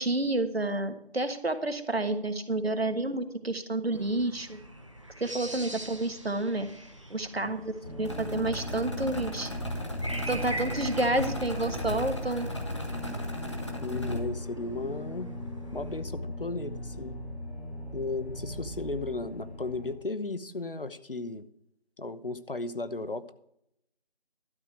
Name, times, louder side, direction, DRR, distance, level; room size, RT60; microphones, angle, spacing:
voice 1, 0.0-4.6 5.2-6.7 7.1-9.5 10.3-12.5, right 2 dB, 70° right, 9 dB, 1.4 m, -29 dB
sound 1, 3.9-16.0, right 1 dB, 30° right, 0.9 m, -44 dB
sound 2, 7.8-19.9, left 1 dB, 75° left, 4.4 m, -38 dB
sound 3, 8.0-14.2, equal, 25° left, 1.3 m, -37 dB
voice 2, 13.8-15.3 15.7-17.2 17.9-21.5 22.0-23.3, left 2 dB, 55° left, 12 dB, 0.9 m, -35 dB
12.0 x 4.9 x 8.7 m, 0.75 s
figure-of-eight pair, 170°, 32 cm